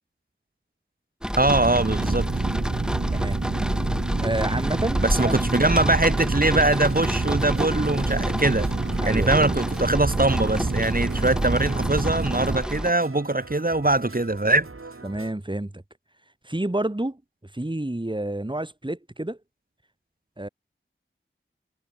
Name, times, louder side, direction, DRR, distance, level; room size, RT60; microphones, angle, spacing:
sound 1, 1.2-12.9, equal, 5° right, 6.1 m, -29 dB
voice 1, 1.4-2.3 5.0-8.7 9.0-14.7, right 2 dB, 45° right, 3.1 m, -22 dB
sound 2, 1.5-12.6, right 3 dB, 60° right, 2.4 m, -28 dB
voice 2, 4.2-5.9 9.0-9.6 11.1-11.2 15.0-15.8 16.4-19.4 20.4-20.5, right 1 dB, 25° right, 3.3 m, -30 dB
sound 3, 6.7-15.3, right 3 dB, 90° right, 4.4 m, -43 dB
wide cardioid pair, 50°, 21 cm